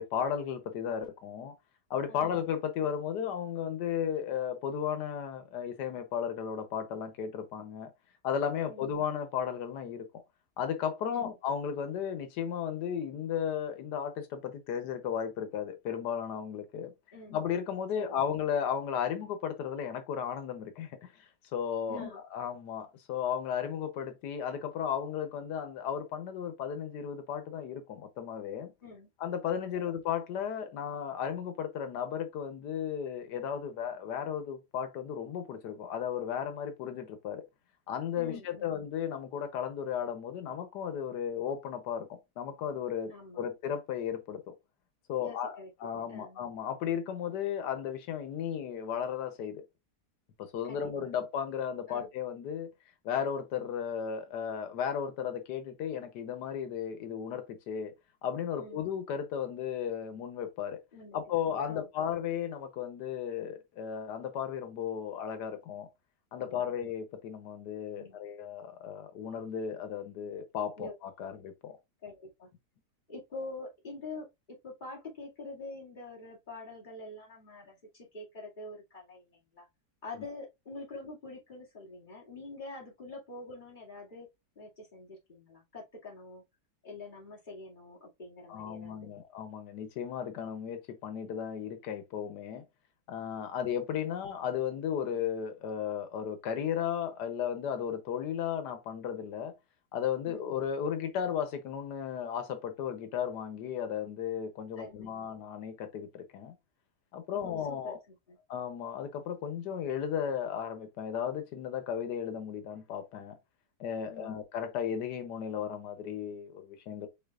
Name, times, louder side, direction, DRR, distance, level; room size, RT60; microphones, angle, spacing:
voice 1, 0.0-1.6 1.9-7.9 8.2-10.2 10.6-16.9 17.3-28.7 29.2-37.4 37.9-44.5 45.1-49.6 50.4-52.7 53.0-57.9 58.2-60.8 61.1-65.9 66.3-71.8 88.5-92.6 93.1-99.5 99.9-106.5 107.1-108.0 108.5-113.4 113.8-117.1, left 8 dB, 90° left, 1.4 m, -35 dB
voice 2, 21.9-22.2 28.8-29.1 38.2-38.7 43.1-43.5 45.2-45.7 46.1-46.4 50.6-50.9 51.9-52.1 58.6-58.8 60.9-62.1 66.4-66.8 68.0-68.2 70.8-70.9 72.0-72.5 73.1-79.7 80.0-84.3 84.6-86.4 86.8-89.1 100.3-100.5 104.8-105.3 107.3-108.4 114.1-114.4, left 2 dB, 30° left, 2.4 m, -46 dB
5.6 x 3.8 x 2.4 m
omnidirectional pair, 1.7 m